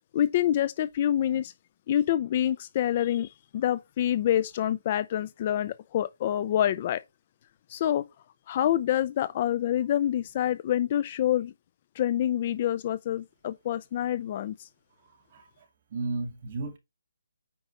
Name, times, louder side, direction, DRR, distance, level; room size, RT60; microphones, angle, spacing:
voice 1, 0.1-1.5 1.9-7.0 7.7-8.1 8.5-11.5 12.0-14.7, left 11 dB, 25° left, 0.4 m, -27 dB
voice 2, 15.9-16.8, right 3 dB, 30° right, 2.2 m, -33 dB
9.0 x 5.1 x 4.1 m
hypercardioid pair, 170°, 0 cm